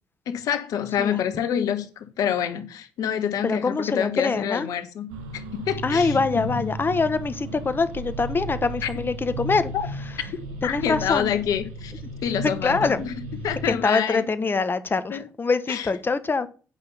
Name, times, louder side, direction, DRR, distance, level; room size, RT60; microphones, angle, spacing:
voice 1, 0.3-6.7 8.8-8.9 9.7-9.9 10.6-11.9 12.2-13.1 13.4-14.2 15.1-15.2 15.7-15.9, left 9 dB, 70° left, 1.4 m, -27 dB
voice 2, 3.4-4.7 5.8-9.7 10.6-11.3 12.4-13.0 13.6-16.5, left 4 dB, 35° left, 1.2 m, -24 dB
sound 1, 5.1-13.7, right 1 dB, 85° right, 1.3 m, -34 dB
9.1 x 5.6 x 5.6 m
hypercardioid pair, 50°, 6 cm